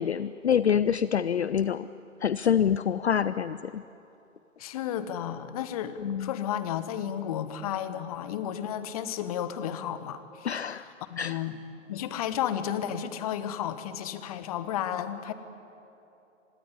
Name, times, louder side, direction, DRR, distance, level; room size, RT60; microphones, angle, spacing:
voice 1, 0.0-1.9 2.2-3.8 6.0-6.3 10.4-10.8 11.2-11.4, left 8 dB, 60° left, 15 dB, 0.6 m, -26 dB
voice 2, 4.6-10.5 11.1-11.6 11.9-15.3, left 10 dB, 30° left, 12 dB, 1.3 m, -32 dB
25.5 x 19.5 x 9.9 m, 2.9 s
figure-of-eight pair, 130°, 39 cm